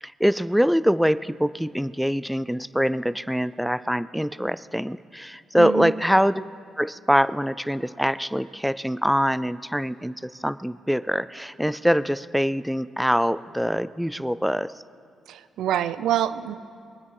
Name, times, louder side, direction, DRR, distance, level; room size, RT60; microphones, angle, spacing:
voice 1, 0.0-6.4 6.8-14.7, equal, ahead, 17 dB, 0.3 m, -24 dB
voice 2, 5.6-5.9 15.3-16.6, right 11 dB, 80° right, 15 dB, 0.5 m, -26 dB
23.0 x 9.5 x 4.8 m, 2.4 s
cardioid pair, 90°, 0 cm